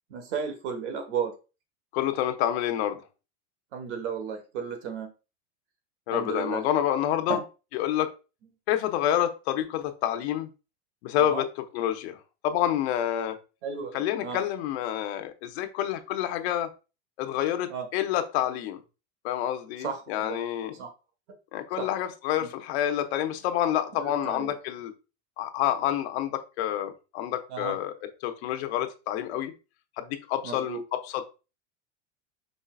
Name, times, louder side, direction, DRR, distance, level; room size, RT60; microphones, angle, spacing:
voice 1, 0.1-1.3 3.7-5.1 6.1-6.7 7.3-7.4 11.2-11.4 13.6-14.4 17.7-17.9 19.8-20.4 20.7-20.9 21.8-21.9 22.4-22.5 23.9-24.5 27.5-27.8 30.4-30.8, right 6 dB, 80° right, 7 dB, 1.3 m, -34 dB
voice 2, 1.9-3.0 6.1-7.4 7.7-8.1 8.7-10.5 11.0-11.4 11.7-13.4 13.9-16.7 17.2-18.8 19.2-20.7 21.5-24.9 25.4-27.9 28.2-29.5 30.0-31.2, left 11 dB, 65° left, 7 dB, 0.8 m, -28 dB
5.4 x 3.3 x 2.3 m, 0.31 s
supercardioid pair, 165°, 35 cm